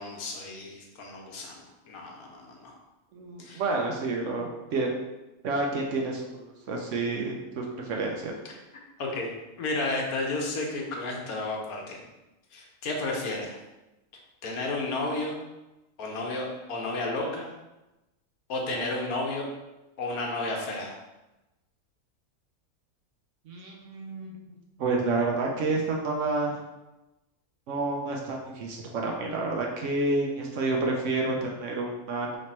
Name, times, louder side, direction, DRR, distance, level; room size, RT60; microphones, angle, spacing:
voice 1, 0.0-1.6 1.9-2.7 3.4-3.6 8.5-8.6 9.0-9.3 9.6-12.0 12.5-13.6 14.4-15.4 16.0-17.5 18.5-19.5 20.0-21.0, left 2 dB, 75° left, 0 dB, 1.3 m, -32 dB
voice 2, 3.1-4.9 5.4-8.3 23.5-24.5 24.8-26.5 27.7-32.4, right 3 dB, 65° right, 0 dB, 0.8 m, -29 dB
3.2 x 3.0 x 4.2 m, 1.0 s
omnidirectional pair, 1.5 m